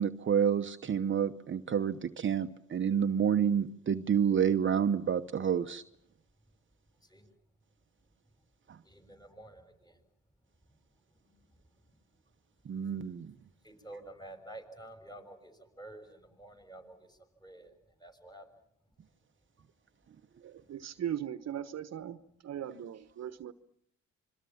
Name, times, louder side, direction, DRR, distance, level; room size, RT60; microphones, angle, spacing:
voice 1, 0.0-5.8 8.7-8.8 12.6-13.4, right 8 dB, 40° right, 0.9 m, -29 dB
voice 2, 8.8-10.0 13.6-17.7 18.0-18.5, right 1 dB, 15° left, 6.7 m, -50 dB
voice 3, 20.4-22.2 22.4-23.5, right 10 dB, 60° right, 1.2 m, -38 dB
26.5 x 23.0 x 7.3 m
cardioid pair, 90°, 30 cm